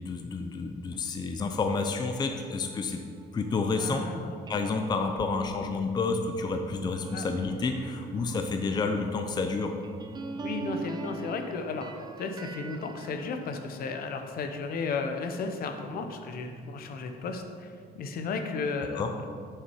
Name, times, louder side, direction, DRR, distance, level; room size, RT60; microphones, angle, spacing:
voice 1, 0.0-3.0 3.3-4.0 4.5-9.7 18.9-19.1, left 4 dB, 25° left, 5 dB, 0.5 m, -30 dB
sound 1, 2.4-14.9 15.4-18.3, right 3 dB, 25° right, 0.4 m, -43 dB
voice 2, 3.7-4.3 7.1-7.3 10.4-11.9 12.2-19.2, left 4 dB, 60° left, 5 dB, 0.8 m, -34 dB
6.8 x 5.8 x 4.6 m, 2.1 s
cardioid pair, 110°, 17 cm